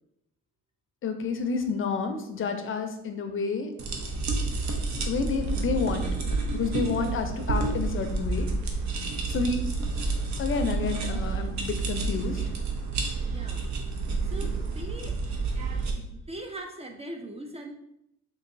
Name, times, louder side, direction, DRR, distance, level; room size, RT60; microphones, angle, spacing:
voice 1, 1.0-3.7 5.1-8.5 9.3-9.6 10.4-12.4, left 5 dB, 45° left, 6 dB, 0.5 m, -30 dB
sound 1, 3.8-15.9, right 3 dB, 65° right, 0.6 m, -29 dB
voice 2, 13.2-13.7 13.9-15.2 16.1-17.7, right 1 dB, 20° right, 3 dB, 0.4 m, -41 dB
3.7 x 2.6 x 2.5 m, 0.80 s
cardioid pair, 90°, 30 cm